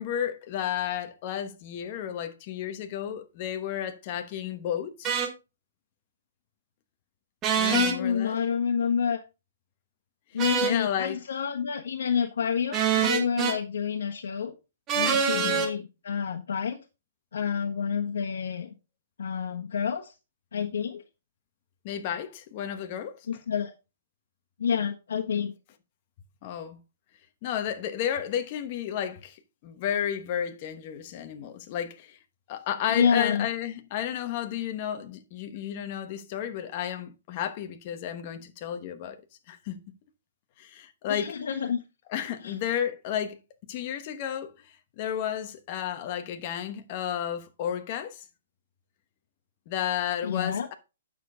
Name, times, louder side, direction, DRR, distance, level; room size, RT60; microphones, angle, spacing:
voice 1, 0.0-5.1 7.6-8.4 10.6-11.2 15.3-15.7 21.8-23.2 26.4-26.8 27.4-32.2 32.5-39.2 39.5-39.8 40.6-41.4 42.1-43.4 43.7-48.2 49.7-50.7, left 10 dB, 30° left, 1.1 m, -32 dB
sound 1, 5.0-5.3 7.4-8.0 10.4-10.8 12.7-13.6 14.9-15.7, right 7 dB, 15° right, 1.1 m, -25 dB
voice 2, 7.7-9.2 10.3-14.5 14.9-16.8 17.3-18.7 19.2-20.1 20.5-21.0 23.3-23.7 24.6-25.5 32.9-33.5 41.1-41.8 42.4-42.6 50.2-50.7, left 7 dB, 80° left, 1.3 m, -28 dB
9.3 x 6.7 x 3.9 m
hypercardioid pair, 175°, 0 cm